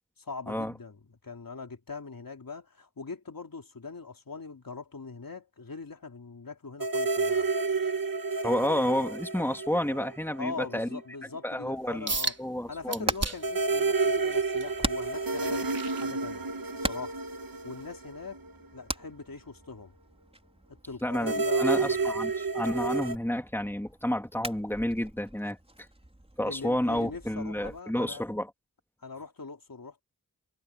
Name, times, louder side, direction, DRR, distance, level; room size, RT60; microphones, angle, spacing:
voice 1, 0.2-7.5 10.4-12.3 12.7-16.5 16.8-17.1 17.6-18.4 18.7-19.9 20.7-22.0 26.5-28.2 29.0-30.0, left 4 dB, 70° left, 3.5 m, -41 dB
sound 1, 6.8-10.6 10.8-10.9 13.4-18.8 21.1-23.2, right 4 dB, 70° right, 2.0 m, -30 dB
voice 2, 8.4-11.0 11.4-12.1 12.4-13.1 21.0-25.6 26.4-28.5, left 1 dB, 5° left, 3.2 m, -30 dB
sound 2, 12.1-12.4 12.9-13.6 14.1-16.7 17.1-17.4 17.9-18.0, right 2 dB, 45° right, 4.1 m, -35 dB
Hammer, 12.6-27.8, right 1 dB, 15° right, 5.4 m, -41 dB
cardioid pair, 45°, 35 cm